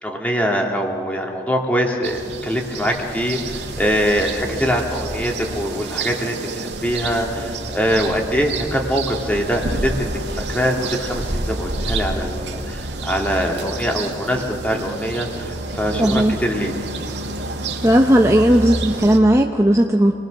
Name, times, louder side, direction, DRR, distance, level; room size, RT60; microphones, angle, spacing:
voice 1, 0.0-16.7, equal, 10° left, 1 dB, 2.3 m, -23 dB
sound 1, 2.0-19.2, right 2 dB, 85° right, 2.2 m, -29 dB
voice 2, 16.0-16.4 17.8-20.1, equal, 15° right, 2 dB, 0.8 m, -15 dB
28.5 x 20.5 x 6.5 m, 2.5 s
head